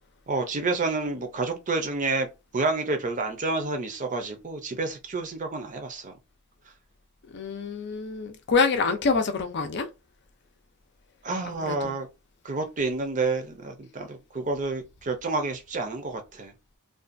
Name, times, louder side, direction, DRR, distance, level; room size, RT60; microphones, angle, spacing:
voice 1, 0.3-2.3 2.5-6.1 11.2-12.1 12.4-16.5, right 3 dB, 35° right, 0.6 m, -29 dB
voice 2, 7.3-9.9 11.4-11.9, left 4 dB, 55° left, 0.5 m, -26 dB
2.6 x 2.3 x 2.5 m
head